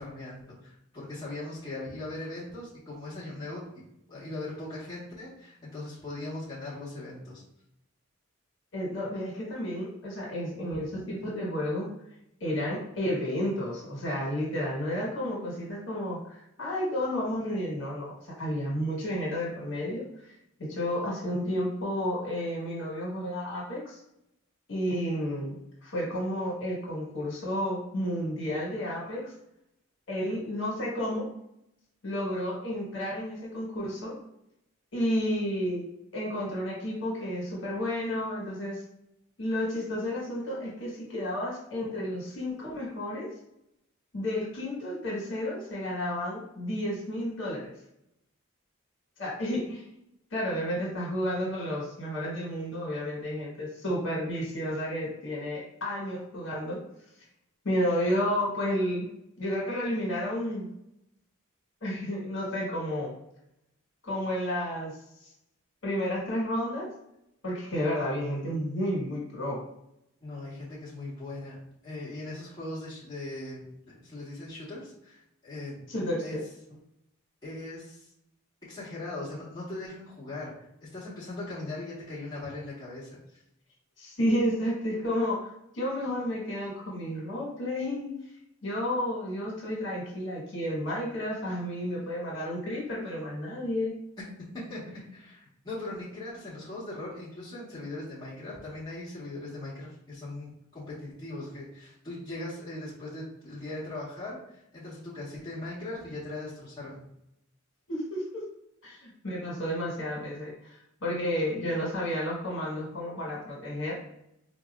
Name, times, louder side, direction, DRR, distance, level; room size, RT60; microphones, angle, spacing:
voice 1, 0.0-3.7 4.1-7.4 70.2-71.6 71.8-75.8 76.2-76.4 77.4-78.1 78.7-80.5 80.8-83.2 94.5-94.8 95.1-107.0, left 2 dB, 20° left, -9 dB, 1.3 m, -39 dB
voice 2, 8.7-11.9 12.4-20.3 20.6-24.0 24.7-25.6 25.8-29.3 30.1-31.3 32.0-34.1 34.9-35.8 36.1-38.8 39.4-43.3 44.1-47.7 49.2-49.8 50.3-56.8 57.6-59.1 59.4-60.7 61.8-63.1 64.0-64.9 65.2-65.3 65.8-66.9 67.4-69.6 75.9-76.4 84.0-88.2 88.6-93.9 107.9-108.4 108.8-114.0, equal, 65° left, -4 dB, 1.4 m, -31 dB
4.1 x 2.9 x 2.4 m, 0.81 s
head